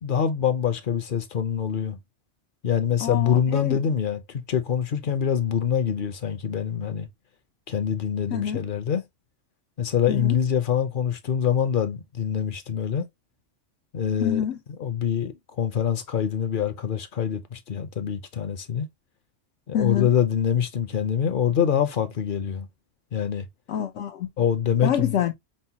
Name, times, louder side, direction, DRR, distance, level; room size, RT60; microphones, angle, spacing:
voice 1, 0.0-2.0 2.6-7.1 7.7-9.0 9.8-13.0 13.9-14.5 14.8-18.9 19.7-22.7 23.1-23.5 24.4-25.1, left 8 dB, 55° left, 0.7 m, -25 dB
voice 2, 3.0-3.8 8.3-8.6 10.1-10.3 14.2-14.6 19.7-20.1 23.7-24.3 24.8-25.3, left 9 dB, 90° left, 1.0 m, -26 dB
5.4 x 2.1 x 2.8 m
omnidirectional pair, 1.2 m